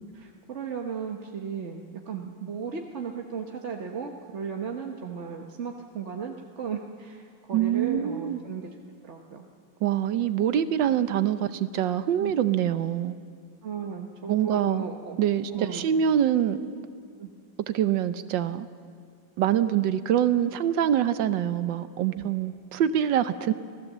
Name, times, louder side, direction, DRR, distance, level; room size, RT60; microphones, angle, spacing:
voice 1, 0.0-8.7 9.0-9.5 12.2-12.3 13.6-15.2 15.5-15.9 17.2-17.3 22.1-22.3, right 6 dB, 45° right, 2 dB, 1.2 m, -35 dB
voice 2, 7.5-8.4 9.8-13.1 14.3-14.9 15.2-16.6 17.7-18.7 19.4-23.5, right 10 dB, 75° right, 12 dB, 1.5 m, -25 dB
26.5 x 16.5 x 7.4 m, 2.2 s
omnidirectional pair, 2.1 m